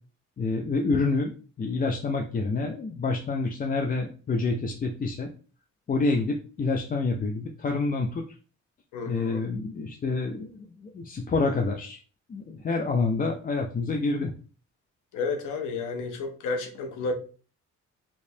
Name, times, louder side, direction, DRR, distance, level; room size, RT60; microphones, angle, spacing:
voice 1, 0.4-1.3 1.6-5.3 5.9-8.2 9.1-12.0 12.3-14.3, left 3 dB, 30° left, 0.5 m, -27 dB
voice 2, 8.9-9.5 15.1-17.1, left 3 dB, 85° left, 0.8 m, -31 dB
3.4 x 3.0 x 2.7 m
cardioid pair, 90°, 30 cm